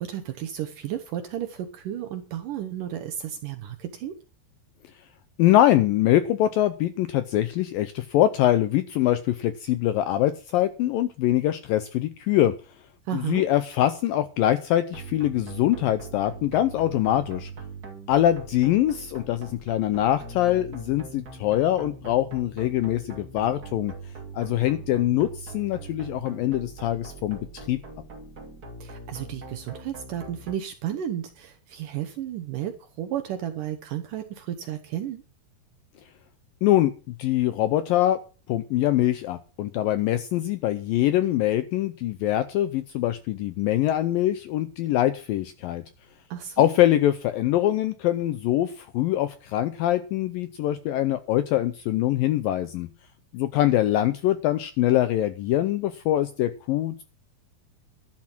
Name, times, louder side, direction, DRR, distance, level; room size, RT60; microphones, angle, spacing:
voice 1, 0.0-4.1 13.1-13.4 28.8-35.2 46.3-46.7, right 11 dB, 70° right, 7 dB, 2.1 m, -33 dB
voice 2, 5.4-12.5 13.1-17.5 18.1-23.9 24.3-27.8 36.6-36.9 37.2-38.2 38.5-45.8 46.6-52.9 53.3-57.0, left 13 dB, 80° left, 12 dB, 2.1 m, -23 dB
sound 1, 14.9-30.5, right 4 dB, 25° right, 2.4 m, -41 dB
12.0 x 10.5 x 6.0 m, 0.36 s
omnidirectional pair, 4.8 m